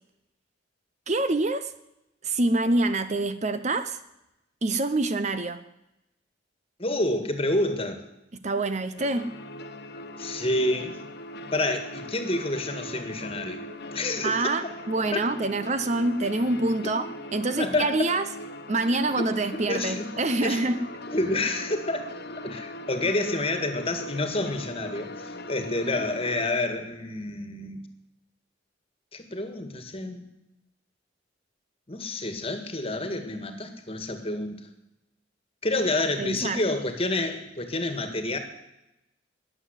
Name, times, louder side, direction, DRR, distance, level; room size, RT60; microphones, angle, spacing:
voice 1, 1.1-1.7 2.2-4.0 4.6-5.6 8.4-9.3 14.2-18.2 18.7-20.8 36.2-36.6, right 2 dB, 35° right, 11 dB, 0.7 m, -26 dB
voice 2, 6.8-8.0 10.2-11.0 11.5-13.6 13.9-14.5 15.1-15.2 17.6-17.9 19.7-20.1 20.4-20.6 21.1-22.1 22.4-27.8 29.1-30.3 31.9-34.7 35.6-38.4, left 2 dB, 30° left, 8 dB, 1.7 m, -28 dB
sound 1, 9.0-26.5, left 1 dB, 55° left, 1.2 m, -40 dB
20.0 x 7.5 x 8.1 m, 0.89 s
head